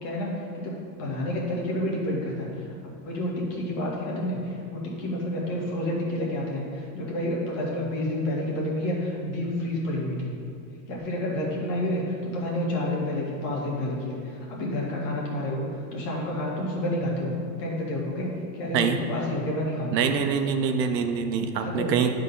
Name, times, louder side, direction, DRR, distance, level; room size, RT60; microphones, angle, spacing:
voice 1, 0.0-2.7 3.0-10.4 10.9-15.7 15.9-17.3 17.6-20.0 21.6-22.0, left 1 dB, 45° left, -3 dB, 1.9 m, -29 dB
voice 2, 19.9-22.2, right 6 dB, 85° right, 6 dB, 0.9 m, -25 dB
9.9 x 3.8 x 5.5 m, 2.4 s
supercardioid pair, 160°, 49 cm